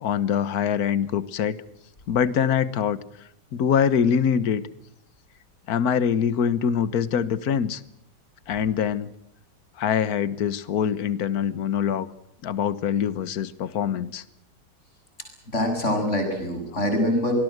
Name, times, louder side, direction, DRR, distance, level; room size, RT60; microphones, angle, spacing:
voice 1, 0.0-1.6 2.1-3.0 3.5-4.6 5.7-7.8 8.5-9.1 9.8-12.1 12.4-14.2, left 8 dB, 60° left, 16 dB, 1.5 m, -24 dB
voice 2, 15.5-17.3, left 1 dB, 40° left, 4 dB, 7.7 m, -24 dB
25.5 x 20.0 x 8.0 m, 0.78 s
omnidirectional pair, 2.0 m